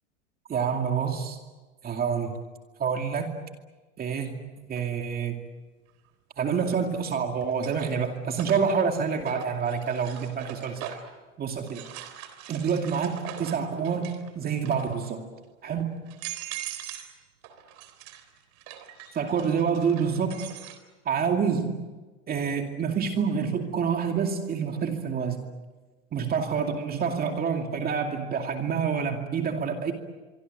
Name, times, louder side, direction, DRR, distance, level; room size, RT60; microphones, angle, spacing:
voice 1, 0.5-1.4 1.8-2.3 2.8-3.4 4.0-4.4 4.7-5.4 6.4-11.0 11.4-11.8 12.5-15.3 15.6-16.0 19.1-20.4 21.1-21.8 22.3-25.5 26.1-29.9, right 6 dB, 25° right, 4 dB, 2.5 m, -27 dB
sound 1, 4.8-4.9 6.6-7.0 7.4-11.2 11.7-14.3 14.6-15.1 15.6-15.7 16.1-17.1 17.4-20.8, right 11 dB, 45° right, 3.8 m, -42 dB
25.0 x 24.5 x 8.0 m, 1.3 s
hypercardioid pair, 115°, 38 cm